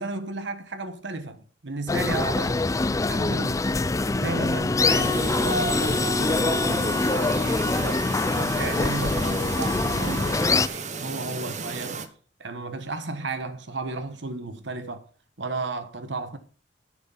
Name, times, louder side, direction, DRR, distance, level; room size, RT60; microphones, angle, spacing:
voice 1, 0.0-2.7 3.1-8.1 8.4-12.1 12.4-15.1 15.4-16.4, right 3 dB, 70° right, 1.3 m, -33 dB
sound 1, 1.9-10.7, left 3 dB, 15° left, 0.4 m, -24 dB
Chirp tweet, 4.9-12.1, right 4 dB, 40° right, 1.0 m, -35 dB
10.5 x 6.3 x 5.7 m
head